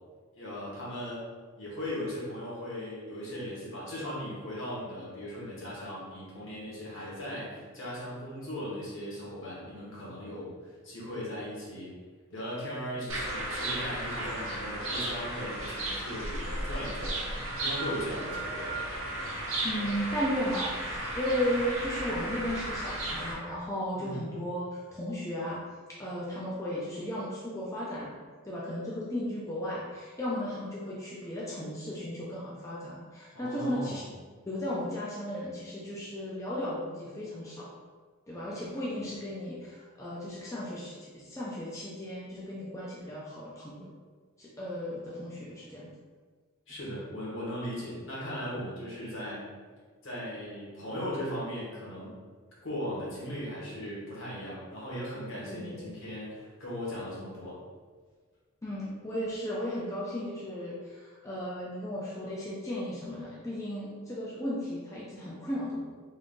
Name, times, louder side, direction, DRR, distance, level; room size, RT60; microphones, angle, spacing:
voice 1, 0.3-1.3 1.6-11.9 12.3-18.7 24.0-24.2 33.3-34.1 46.7-49.4 50.0-52.1 52.6-57.6, equal, 65° left, -7 dB, 1.4 m, -38 dB
sound 1, 13.1-23.3, right 1 dB, 75° right, 0.9 m, -34 dB
voice 2, 19.6-20.8 21.1-25.6 26.0-28.2 28.4-34.0 34.5-37.7 38.3-43.9 44.4-45.9 55.5-55.9 58.6-65.8, equal, 15° left, -6 dB, 0.4 m, -35 dB
3.5 x 2.6 x 3.7 m, 1.5 s
head